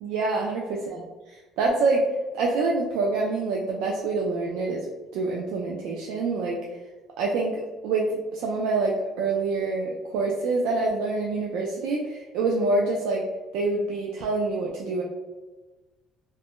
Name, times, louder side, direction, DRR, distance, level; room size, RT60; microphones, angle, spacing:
voice 1, 0.0-2.0 2.3-4.8 5.1-6.6 7.2-13.3 13.5-15.0, right 3 dB, 80° right, -1 dB, 0.4 m, -26 dB
2.5 x 2.1 x 3.4 m, 1.2 s
cardioid pair, 120°, 0 cm